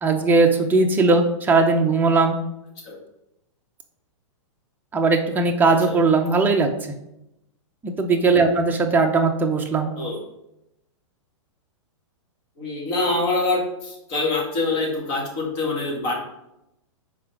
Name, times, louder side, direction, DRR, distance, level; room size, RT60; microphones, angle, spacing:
voice 1, 0.0-2.4 4.9-6.7 7.8-9.9, right 3 dB, 10° right, 3 dB, 0.6 m, -19 dB
voice 2, 5.7-6.0 10.0-10.2 12.6-16.1, left 2 dB, 35° left, -1 dB, 1.9 m, -25 dB
5.5 x 4.7 x 5.0 m, 0.86 s
hypercardioid pair, 145°, 17 cm